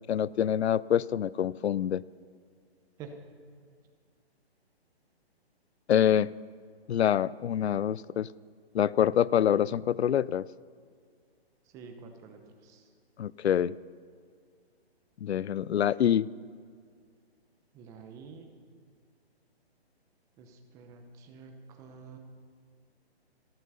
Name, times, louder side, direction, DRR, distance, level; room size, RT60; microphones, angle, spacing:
voice 1, 0.0-2.0 5.9-6.3 6.9-8.3 8.7-10.5 13.2-13.7 15.2-16.3, left 9 dB, 80° left, 21 dB, 0.5 m, -26 dB
voice 2, 11.7-12.8 17.7-18.5 20.4-22.2, right 5 dB, 10° right, 5 dB, 0.8 m, -48 dB
14.0 x 13.0 x 5.6 m, 2.1 s
hypercardioid pair, 160°, 32 cm